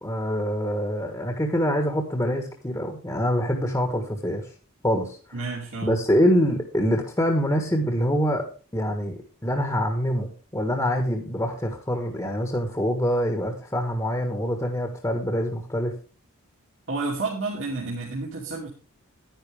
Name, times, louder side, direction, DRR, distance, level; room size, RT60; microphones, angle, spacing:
voice 1, 0.0-4.5 4.8-5.4 5.8-8.5 8.7-15.9, equal, 15° left, 3 dB, 1.5 m, -25 dB
voice 2, 5.3-5.9 16.9-18.7, right 3 dB, 60° right, -4 dB, 2.7 m, -30 dB
10.5 x 10.5 x 3.5 m, 0.36 s
head